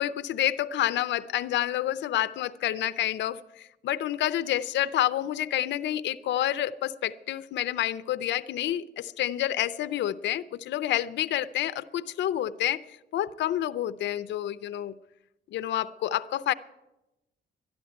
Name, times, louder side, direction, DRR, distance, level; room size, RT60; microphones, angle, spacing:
voice 1, 0.0-12.8 13.1-14.9 15.5-16.5, left 12 dB, 90° left, 0.6 m, -28 dB
12.5 x 11.5 x 9.1 m
cardioid pair, 155°, 18 cm